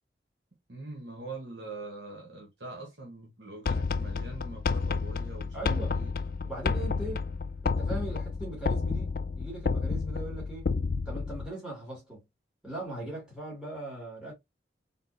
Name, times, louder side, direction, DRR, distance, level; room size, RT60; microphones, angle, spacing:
voice 1, 0.7-6.2, right 2 dB, 75° right, 1.1 m, -43 dB
sound 1, 3.7-11.5, left 4 dB, 50° left, 0.4 m, -30 dB
voice 2, 5.5-6.0 6.4-7.3 7.6-10.7 11.1-12.2 12.6-14.3, right 2 dB, 5° right, 2.1 m, -39 dB
3.9 x 3.7 x 2.6 m
head